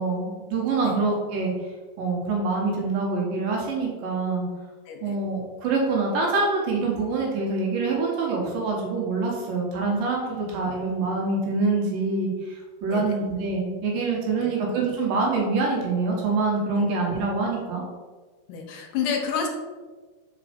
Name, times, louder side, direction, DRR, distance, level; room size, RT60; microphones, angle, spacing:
voice 1, 0.0-1.5 2.0-4.5 5.0-17.8, right 3 dB, 75° right, -2 dB, 2.9 m, -25 dB
voice 2, 18.5-19.5, left 6 dB, 75° left, 2 dB, 2.1 m, -29 dB
5.2 x 4.9 x 5.1 m, 1.4 s
omnidirectional pair, 4.3 m